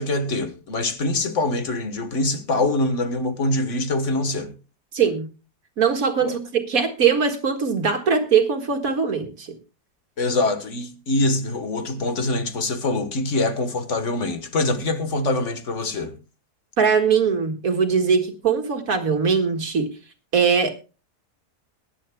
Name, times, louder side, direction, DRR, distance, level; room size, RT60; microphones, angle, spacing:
voice 1, 0.0-4.5 6.2-6.4 10.2-16.2, left 2 dB, 50° left, 1.5 m, -24 dB
voice 2, 4.9-5.3 5.8-9.5 16.8-19.9 20.3-20.7, right 6 dB, 60° right, 2.0 m, -21 dB
22.5 x 11.0 x 2.2 m
omnidirectional pair, 1.7 m